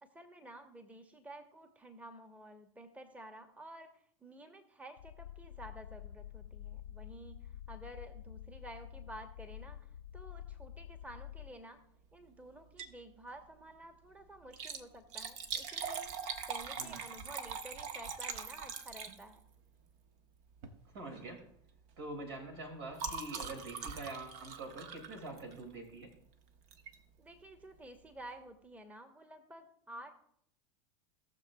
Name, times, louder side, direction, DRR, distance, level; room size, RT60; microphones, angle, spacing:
voice 1, 0.0-3.9 4.2-11.8 12.1-19.4 27.2-30.1, right 1 dB, 10° right, 6 dB, 1.1 m, -52 dB
sound 1, 5.0-11.5, left 11 dB, 90° left, 0.4 m, -48 dB
Liquid, 12.6-13.0 13.4-13.5 14.4-19.5 20.5-20.8 21.1-21.4 21.7-25.8 26.7-27.0 27.5-27.6 27.8-27.9, right 6 dB, 55° right, 1.1 m, -42 dB
voice 2, 20.9-21.4 22.0-26.1, right 2 dB, 75° right, 2 dB, 2.5 m, -45 dB
18.0 x 6.6 x 2.3 m, 0.70 s
hypercardioid pair, 100°, 14 cm